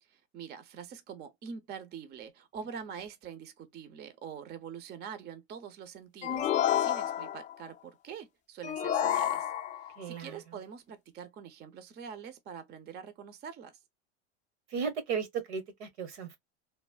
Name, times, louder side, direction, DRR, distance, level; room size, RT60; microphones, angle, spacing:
voice 1, 0.0-9.5 9.8-13.8, right 7 dB, 30° right, 0.6 m, -45 dB
sound 1, 6.2-7.6 8.6-10.0, left 10 dB, 25° left, 0.4 m, -29 dB
voice 2, 10.0-10.4 14.7-16.4, right 6 dB, 75° right, 1.2 m, -35 dB
3.2 x 2.0 x 2.2 m
hypercardioid pair, 100°, 33 cm